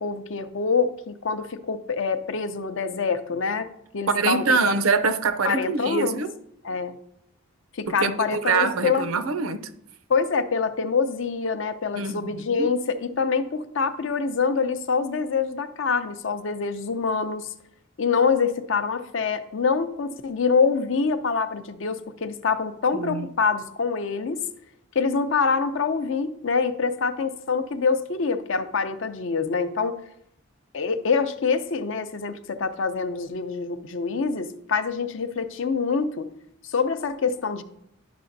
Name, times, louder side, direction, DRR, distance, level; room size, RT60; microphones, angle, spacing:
voice 1, 0.0-3.7 3.9-4.8 5.4-6.2 6.6-7.0 7.7-9.1 10.1-17.5 18.0-24.4 24.9-29.9 30.7-36.3 36.6-37.6, left 5 dB, 65° left, 0.5 m, -25 dB
voice 2, 4.1-6.4 8.0-9.7 12.0-12.7 22.9-23.3, right 4 dB, 85° right, 0.6 m, -24 dB
11.0 x 5.7 x 2.6 m
head